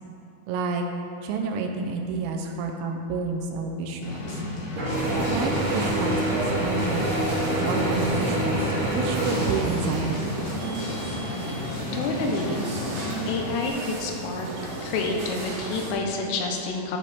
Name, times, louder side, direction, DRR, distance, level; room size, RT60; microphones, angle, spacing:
voice 1, 0.5-0.8 1.2-4.4 5.3-7.1 7.6-10.3, right 4 dB, 85° right, 3 dB, 3.1 m, -29 dB
sound 1, 4.0-13.7, left 2 dB, 70° left, 2.9 m, -33 dB
Mechanisms / Drill, 4.8-10.3, right 1 dB, 40° right, 1.9 m, -27 dB
sound 2, 4.9-15.9, right 2 dB, 60° right, 2.6 m, -34 dB
voice 2, 11.9-12.7 13.3-14.5 14.8-17.0, left 3 dB, 85° left, 1 dB, 3.4 m, -28 dB
12.5 x 5.2 x 4.2 m, 2.8 s
omnidirectional pair, 5.7 m